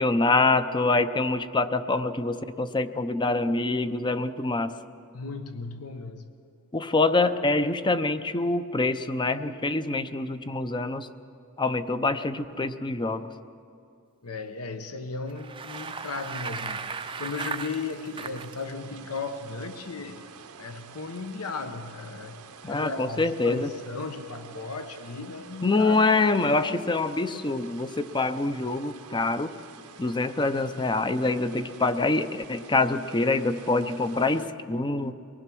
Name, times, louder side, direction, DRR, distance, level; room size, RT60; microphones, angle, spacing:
voice 1, 0.0-4.7 6.7-11.1 11.6-13.3 22.6-23.7 25.6-29.6 30.0-35.1, left 3 dB, 20° left, 11 dB, 0.6 m, -25 dB
voice 2, 5.1-6.3 14.2-16.9 17.2-20.2 20.6-22.4 22.6-26.0, left 4 dB, 70° left, 8 dB, 1.1 m, -36 dB
Bicycle, 15.3-18.5, right 5 dB, 25° right, 0.6 m, -36 dB
sound 1, 15.7-34.5, right 6 dB, 90° right, 1.1 m, -48 dB
23.5 x 19.0 x 6.1 m, 2.5 s
head